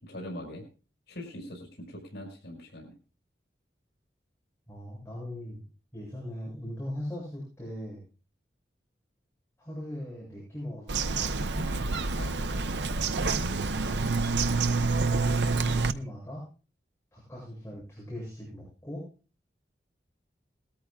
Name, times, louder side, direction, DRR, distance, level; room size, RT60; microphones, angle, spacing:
voice 1, 0.0-0.6 1.1-2.9 11.5-11.8 12.2-12.5, left 1 dB, 80° left, 0 dB, 5.5 m, -42 dB
voice 2, 4.7-5.6 5.9-8.0 9.6-11.3 14.7-16.4 17.1-19.1, left 1 dB, 15° left, -5 dB, 7.7 m, -40 dB
Bird vocalization bird call bird song, 10.9-15.9, right 3 dB, 85° right, 0.8 m, -27 dB
21.0 x 13.5 x 2.4 m, 0.35 s
head